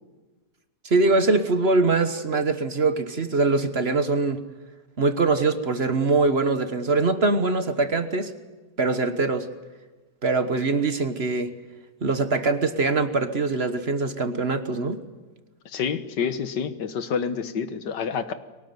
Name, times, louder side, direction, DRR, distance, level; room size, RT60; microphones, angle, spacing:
voice 1, 0.8-4.4 5.0-8.3 8.8-9.5 10.2-11.5 12.0-15.0, right 3 dB, 40° right, 9 dB, 1.4 m, -23 dB
voice 2, 15.7-18.3, left 6 dB, 80° left, 11 dB, 1.9 m, -28 dB
23.0 x 18.5 x 9.5 m, 1.2 s
omnidirectional pair, 1.8 m